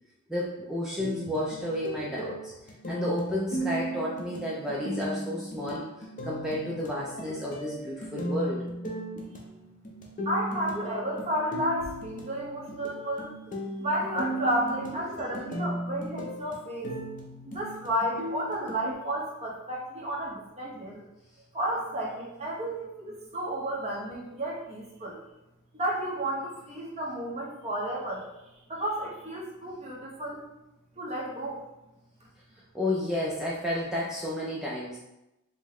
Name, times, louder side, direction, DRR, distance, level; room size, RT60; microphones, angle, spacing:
voice 1, 0.3-2.5 2.9-8.6 15.1-15.2 32.7-35.0, left 1 dB, 5° right, -6 dB, 0.4 m, -31 dB
sound 1, 1.0-18.9, right 1 dB, 35° left, 0.7 m, -36 dB
voice 2, 10.2-13.3 13.8-16.9 17.4-21.0 21.5-25.2 25.7-28.3 28.7-30.4 31.0-31.7, right 1 dB, 30° right, -4 dB, 1.0 m, -32 dB
5.1 x 2.2 x 3.6 m, 0.93 s
head